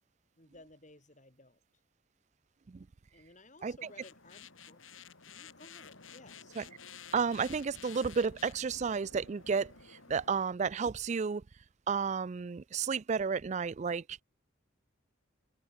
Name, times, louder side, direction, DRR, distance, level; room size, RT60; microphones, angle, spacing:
voice 1, 0.4-1.6 3.1-4.8 5.2-6.5, left 2 dB, 40° left, 6.6 m, -57 dB
sound 1, 3.8-10.4, left 6 dB, 90° left, 7.0 m, -52 dB
voice 2, 7.1-11.4 11.9-14.2, right 5 dB, 35° right, 0.4 m, -32 dB
head